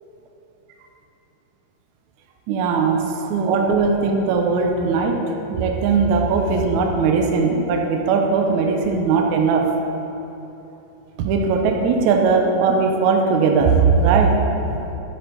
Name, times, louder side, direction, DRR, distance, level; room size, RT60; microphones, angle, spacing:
voice 1, 2.5-5.2 5.5-9.6 11.2-14.3, right 5 dB, 85° right, 2 dB, 1.7 m, -19 dB
11.0 x 10.5 x 3.9 m, 3.0 s
omnidirectional pair, 4.5 m